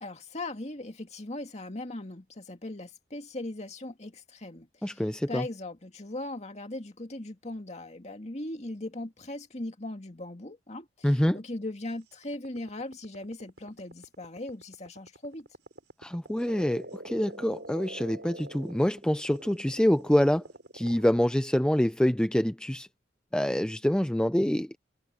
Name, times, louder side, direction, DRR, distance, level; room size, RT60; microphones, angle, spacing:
voice 1, 0.0-5.0 5.3-15.5, left 2 dB, 35° left, 2.2 m, -39 dB
voice 2, 4.8-5.5 11.0-11.4 16.0-20.4 20.7-22.9 23.3-24.8, equal, 5° left, 0.4 m, -26 dB
sound 1, 12.1-21.1, right 1 dB, 65° right, 7.9 m, -45 dB
head